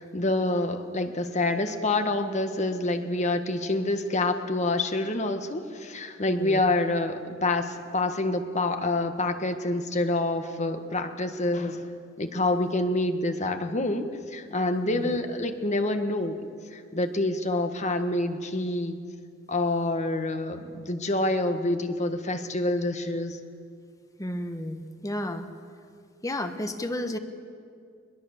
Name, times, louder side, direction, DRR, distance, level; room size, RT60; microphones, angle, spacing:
voice 1, 0.0-11.8 12.2-16.4 16.7-19.0 19.5-23.4, left 2 dB, 35° left, 7 dB, 1.5 m, -27 dB
voice 2, 6.3-6.6 14.9-15.2 24.2-25.5 26.2-27.2, left 1 dB, 15° left, 7 dB, 1.3 m, -32 dB
22.0 x 21.5 x 7.1 m, 2.2 s
head